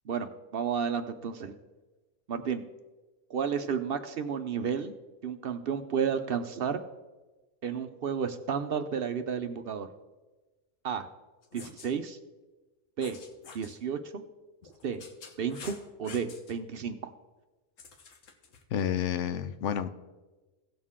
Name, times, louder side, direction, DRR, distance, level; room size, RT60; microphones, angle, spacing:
voice 1, 0.1-1.6 2.3-2.6 3.3-4.9 5.2-6.8 7.6-9.9 10.8-11.1 11.5-12.2 13.0-13.2 13.5-14.2 14.8-15.0 15.4-17.1, right 7 dB, 60° right, 9 dB, 0.7 m, -32 dB
sound 1, 11.4-11.9 13.0-13.8 14.6-16.5 17.8-18.6, left 5 dB, 90° left, 1.4 m, -48 dB
voice 2, 18.7-19.9, left 9 dB, 75° left, 11 dB, 1.0 m, -30 dB
16.5 x 6.5 x 3.6 m, 1.2 s
omnidirectional pair, 1.3 m